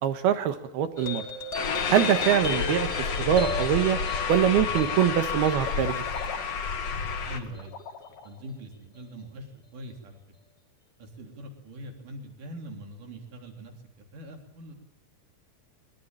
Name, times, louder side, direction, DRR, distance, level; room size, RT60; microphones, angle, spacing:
voice 1, 0.0-1.2 1.9-2.9 3.2-4.0 4.3-6.0, right 10 dB, 75° right, 9 dB, 3.3 m, -23 dB
sound 1, 1.0-7.8, left 3 dB, 30° left, 1.3 m, -37 dB
sound 2, 1.5-7.4, left 6 dB, 45° left, 2.7 m, -30 dB
sound 3, 4.6-8.4, left 6 dB, 70° left, 4.2 m, -41 dB
voice 2, 7.3-7.8 8.2-9.5 9.7-10.2 11.0-13.7 14.1-14.7, equal, 55° right, 3 dB, 4.8 m, -42 dB
22.5 x 21.5 x 9.0 m, 0.74 s
omnidirectional pair, 4.6 m